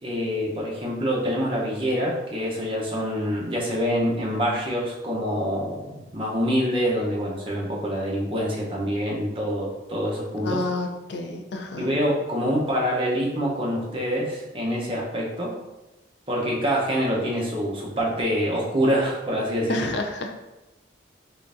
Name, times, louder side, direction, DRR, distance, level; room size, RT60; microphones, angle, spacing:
voice 1, 0.0-10.7 11.8-15.5 16.3-19.9, equal, 25° right, -3 dB, 0.7 m, -26 dB
voice 2, 10.4-11.9 19.7-20.4, left 2 dB, 60° left, 3 dB, 0.4 m, -29 dB
3.7 x 3.4 x 2.5 m, 1.0 s
head